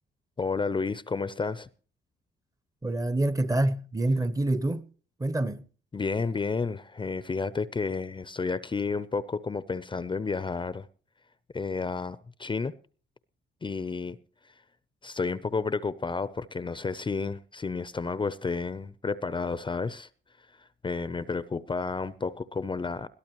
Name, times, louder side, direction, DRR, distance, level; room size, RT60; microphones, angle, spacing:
voice 1, 0.4-1.7 5.9-10.9 11.5-12.7 13.6-14.2 15.0-20.1 20.6-23.1, left 4 dB, 25° left, 0.6 m, -31 dB
voice 2, 2.8-4.9 5.2-5.6, right 1 dB, 15° right, 0.8 m, -26 dB
21.0 x 13.0 x 3.0 m
cardioid pair, 90°, 20 cm